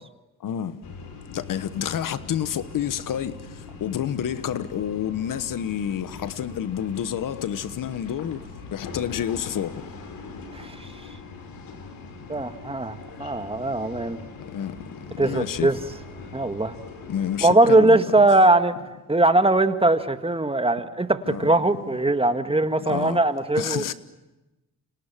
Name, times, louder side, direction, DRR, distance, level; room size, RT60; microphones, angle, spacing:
voice 1, 0.4-0.8 1.3-3.4 3.8-8.4 8.7-9.8 14.5-14.8 15.1-15.7 17.1-18.0 21.2-21.5 22.8-23.2 23.6-23.9, left 9 dB, 70° left, 1.2 m, -29 dB
sound 1, 0.8-17.5, left 4 dB, 90° left, 4.5 m, -41 dB
voice 2, 10.5-10.9 12.3-14.2 15.2-15.8 16.3-16.8 17.4-18.7 19.1-23.8, right 2 dB, 15° right, 1.8 m, -20 dB
29.5 x 26.0 x 7.5 m
cardioid pair, 75°, 34 cm